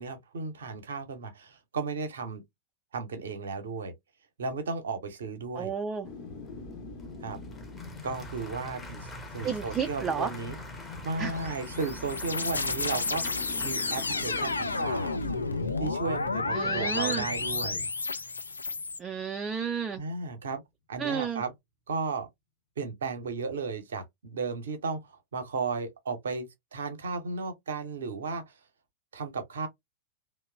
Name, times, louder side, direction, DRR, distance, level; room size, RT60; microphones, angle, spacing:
voice 1, 0.0-2.4 2.9-3.9 4.4-5.7 7.2-7.4 8.0-9.1 9.3-10.6 11.0-13.2 13.6-15.2 15.8-17.8 20.0-20.6 20.9-21.5 21.9-22.3 22.8-28.5 29.1-29.7, right 4 dB, 65° right, 0.6 m, -34 dB
voice 2, 5.5-6.1 9.4-10.3 11.2-11.3 16.5-17.2 19.0-20.0 21.0-21.4, right 7 dB, 20° right, 0.3 m, -32 dB
sound 1, 6.0-19.1 19.4-19.5, left 3 dB, 40° left, 0.8 m, -44 dB
Applause / Crowd, 6.3-15.9, left 1 dB, 10° left, 0.7 m, -47 dB
sound 2, 11.4-19.0, left 3 dB, 80° left, 0.3 m, -31 dB
2.9 x 2.0 x 2.3 m
figure-of-eight pair, 90°, 0 cm